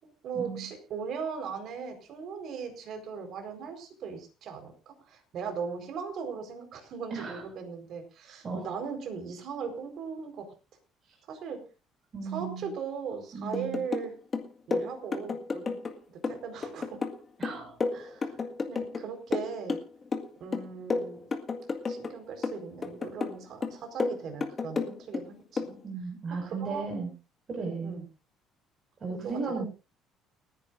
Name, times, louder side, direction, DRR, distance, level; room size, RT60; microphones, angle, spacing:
voice 1, 0.2-10.5 11.3-11.6 12.2-14.1 14.7-15.8 16.1-17.0 17.9-19.8 20.4-21.2 21.9-25.8 26.4-27.1 27.8-28.0 29.2-29.6, right 6 dB, 55° right, 5 dB, 4.4 m, -38 dB
voice 2, 7.1-7.4 8.4-8.6 12.1-12.7 13.3-13.8 17.4-17.7 25.8-27.1 27.5-28.0 29.0-29.6, right 4 dB, 35° right, 0 dB, 5.6 m, -35 dB
sound 1, 13.5-14.1 14.3-16.0 16.2-19.0 19.3-20.3 20.5-22.1 22.4-23.4 23.6-25.2 25.6-25.7, left 4 dB, 30° left, 1.9 m, -32 dB
30.0 x 10.0 x 2.6 m, 0.32 s
cardioid pair, 125°, 0 cm